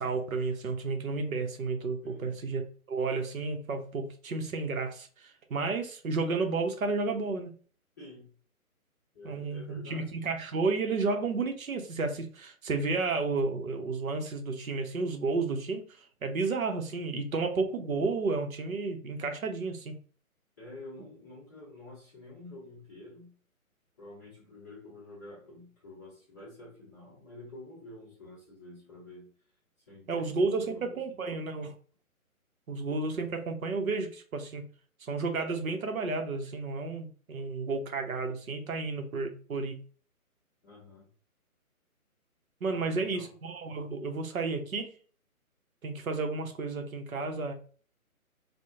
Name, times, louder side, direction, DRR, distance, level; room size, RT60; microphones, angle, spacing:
voice 1, 0.0-2.6 2.9-7.5 9.2-20.0 30.1-31.7 32.7-34.6 35.0-39.8 42.6-45.0 45.8-47.5, right 3 dB, 70° right, 5 dB, 0.7 m, -32 dB
voice 2, 2.0-2.4 8.0-8.3 9.1-10.2 20.6-23.4 24.0-29.3 29.9-31.3 40.6-41.1 42.6-43.3, left 2 dB, 15° left, -9 dB, 0.6 m, -49 dB
2.4 x 2.1 x 2.9 m, 0.42 s
figure-of-eight pair, 140°, 43 cm